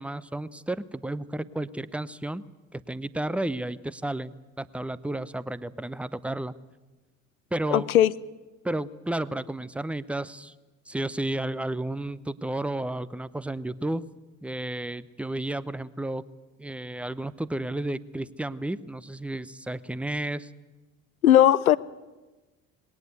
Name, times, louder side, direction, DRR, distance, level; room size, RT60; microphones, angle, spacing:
voice 1, 0.0-2.4 2.7-4.3 4.6-6.5 7.5-7.9 8.6-10.5 10.9-14.0 14.4-16.2 16.6-20.5, right 1 dB, 5° right, 19 dB, 0.7 m, -32 dB
voice 2, 7.7-8.1 21.2-21.8, left 11 dB, 85° left, 20 dB, 0.6 m, -18 dB
20.5 x 17.5 x 8.1 m, 1.2 s
figure-of-eight pair, 55°, 41 cm